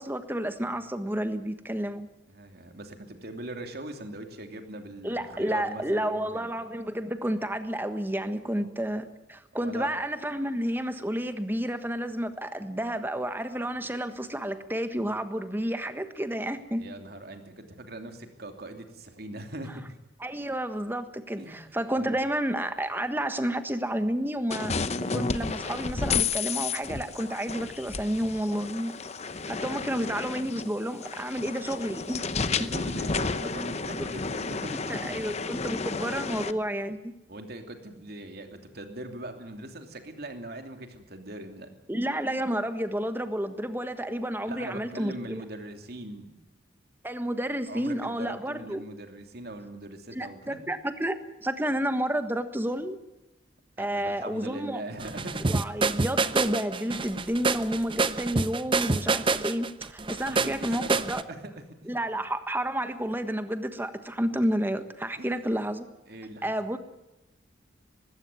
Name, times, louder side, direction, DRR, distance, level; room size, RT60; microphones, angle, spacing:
voice 1, 0.0-2.1 5.0-16.9 20.2-24.7 25.1-29.0 29.5-32.2 34.0-34.1 34.9-37.0 41.9-45.4 47.0-48.8 50.1-53.0 53.8-54.8 55.5-61.2 61.9-65.9 66.4-66.8, right 1 dB, 10° right, 9 dB, 1.4 m, -30 dB
voice 2, 2.3-6.5 8.5-8.6 9.6-9.9 16.8-20.0 21.4-22.1 29.3-29.6 32.5-35.0 35.7-35.9 37.3-41.7 44.4-46.3 47.7-50.6 53.8-55.7 60.1-61.9 65.2-65.4 66.1-66.5, right 1 dB, 55° right, 5 dB, 2.9 m, -41 dB
sound 1, 24.5-36.5, left 4 dB, 35° left, 0.9 m, -32 dB
sound 2, 55.0-61.2, right 3 dB, 25° right, 0.7 m, -27 dB
20.0 x 16.5 x 9.6 m, 0.98 s
head